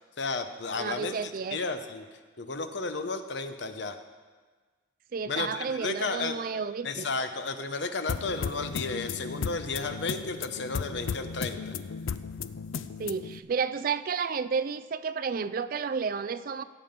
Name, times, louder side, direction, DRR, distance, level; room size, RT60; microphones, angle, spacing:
voice 1, 0.0-2.1 2.4-4.0 5.3-6.4 6.8-11.7, left 3 dB, 60° left, 8 dB, 0.8 m, -33 dB
voice 2, 0.7-1.6 5.1-7.1 13.0-16.6, right 5 dB, 45° right, 13 dB, 0.4 m, -31 dB
sound 1, 8.1-13.4, left 6 dB, 75° left, 0.5 m, -35 dB
16.5 x 7.5 x 5.2 m, 1.4 s
head